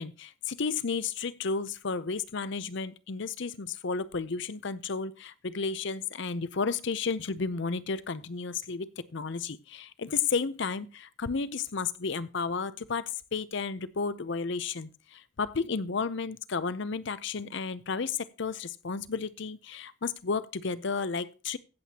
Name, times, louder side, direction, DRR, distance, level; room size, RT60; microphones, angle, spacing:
voice 1, 0.0-21.6, left 5 dB, 55° left, 0.6 m, -32 dB
16.5 x 7.7 x 2.8 m
head